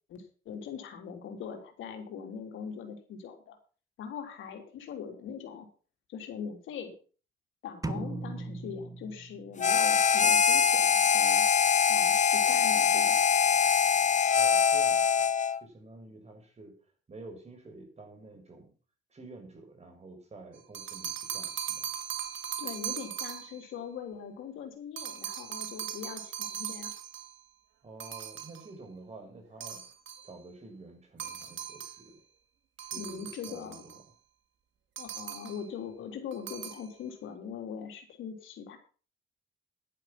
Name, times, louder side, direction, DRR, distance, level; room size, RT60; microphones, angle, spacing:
voice 1, 0.1-3.6 4.0-5.7 6.1-6.9 7.6-11.5 11.9-13.2 22.6-26.9 33.0-33.9 35.0-38.8, left 7 dB, 80° left, 4 dB, 3.4 m, -41 dB
sound 1, 7.8-9.7, right 3 dB, 15° right, 1.2 m, -38 dB
Harmonica, 9.6-15.6, left 7 dB, 40° left, 0.9 m, -23 dB
voice 2, 14.3-15.2 15.6-16.7 17.1-18.7 19.1-21.9 27.8-29.8 30.2-32.2 32.8-33.8, right 2 dB, 35° right, 3 dB, 6.6 m, -49 dB
sound 2, 20.6-23.7 25.0-27.4 28.0-28.7 29.6-30.3 31.2-32.0 32.8-34.0 35.0-35.7 36.3-36.9, right 10 dB, 70° right, 2.2 m, -39 dB
11.0 x 11.0 x 6.0 m, 0.39 s
cardioid pair, 90°, 20 cm